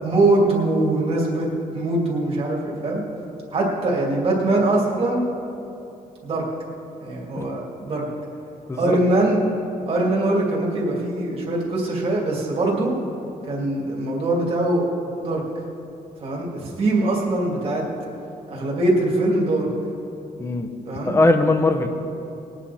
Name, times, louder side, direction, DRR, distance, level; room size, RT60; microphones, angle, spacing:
voice 1, 0.0-3.0 3.5-5.2 6.2-6.4 7.0-8.0 8.8-9.4 9.9-12.9 13.5-14.9 15.2-15.4 16.2-17.9 18.5-19.7 20.8-21.2, right 2 dB, 40° right, -3 dB, 2.4 m, -22 dB
voice 2, 20.4-20.7 21.1-21.9, left 2 dB, 20° left, 7 dB, 0.7 m, -19 dB
20.5 x 8.8 x 4.2 m, 2.8 s
wide cardioid pair, 180°, 15 cm